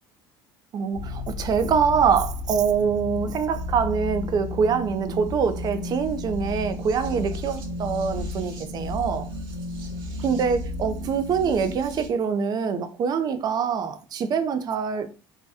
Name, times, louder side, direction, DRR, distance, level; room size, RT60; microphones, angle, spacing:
voice 1, 0.7-9.3 10.2-15.1, right 6 dB, 45° right, 0.5 m, -24 dB
sound 1, 0.9-12.1, left 2 dB, 70° right, 1.0 m, -33 dB
2.7 x 2.2 x 3.4 m
supercardioid pair, 100°, 9 cm